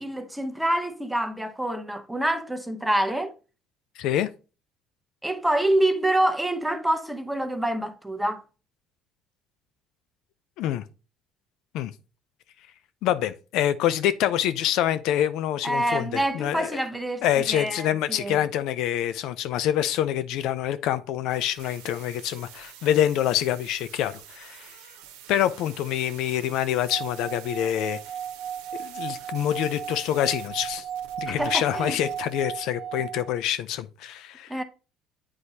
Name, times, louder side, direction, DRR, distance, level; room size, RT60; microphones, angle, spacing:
voice 1, 0.0-3.3 5.2-8.4 15.6-18.4 31.3-32.0 34.5-34.6, right 1 dB, 5° right, 0.9 m, -26 dB
voice 2, 4.0-4.3 10.6-10.8 11.7-11.9 13.0-16.8 17.2-24.7 25.3-28.0 28.8-30.8 31.2-34.6, left 11 dB, 75° left, 0.5 m, -26 dB
sound 1, 21.3-32.4, right 10 dB, 90° right, 0.9 m, -48 dB
Singing / Glass, 26.8-33.4, right 9 dB, 45° right, 1.3 m, -35 dB
7.9 x 4.8 x 2.8 m
supercardioid pair, 85°, 0 cm